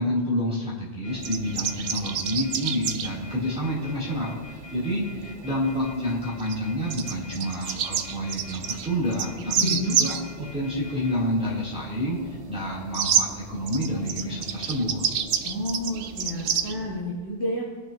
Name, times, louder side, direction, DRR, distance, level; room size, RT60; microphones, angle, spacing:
voice 1, 0.0-15.0, equal, 5° right, -9 dB, 3.1 m, -29 dB
sound 1, 1.0-11.1, left 2 dB, 60° left, 2.8 m, -46 dB
Engine, 1.1-17.0, right 5 dB, 85° right, 1.2 m, -46 dB
sound 2, 1.2-3.1 6.4-6.6 6.9-10.2 12.9-13.2 13.7-16.7, right 7 dB, 60° right, 0.7 m, -27 dB
voice 2, 9.4-10.0 15.4-17.6, left 1 dB, 30° left, -7 dB, 2.3 m, -30 dB
20.0 x 6.8 x 2.9 m, 1.5 s
omnidirectional pair, 1.2 m